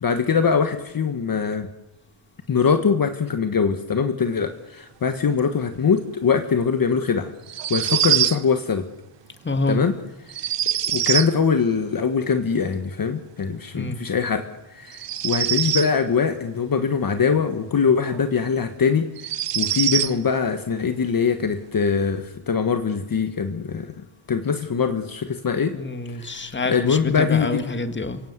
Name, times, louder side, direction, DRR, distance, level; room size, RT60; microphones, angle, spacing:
voice 1, 0.0-1.7 2.5-7.3 7.7-8.9 9.7-10.0 10.4-10.5 10.9-23.9 24.3-25.8 26.2-27.6, left 6 dB, 45° left, 8 dB, 1.5 m, -22 dB
sound 1, 7.5-8.4 10.3-11.3 14.9-16.0 18.1-18.2 19.2-20.2, right 11 dB, 65° right, 0.8 m, -23 dB
voice 2, 9.4-9.8 13.7-14.0 25.7-28.2, left 2 dB, 25° left, 9 dB, 2.1 m, -27 dB
28.5 x 17.5 x 8.1 m, 1.0 s
wide cardioid pair, 135°, 47 cm